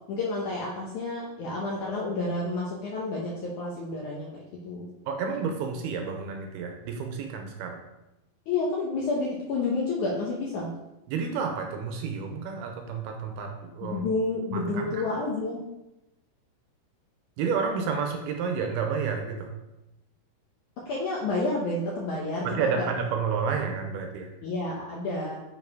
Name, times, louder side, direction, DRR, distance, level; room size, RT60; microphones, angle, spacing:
voice 1, 0.1-4.9 8.5-10.7 13.8-15.6 20.8-22.9 24.4-25.4, left 3 dB, 70° left, -3 dB, 1.9 m, -30 dB
voice 2, 5.1-7.8 11.1-14.0 14.5-15.0 17.4-19.5 22.4-24.3, right 5 dB, 80° right, 3 dB, 2.6 m, -30 dB
7.5 x 4.8 x 4.7 m, 0.94 s
omnidirectional pair, 4.7 m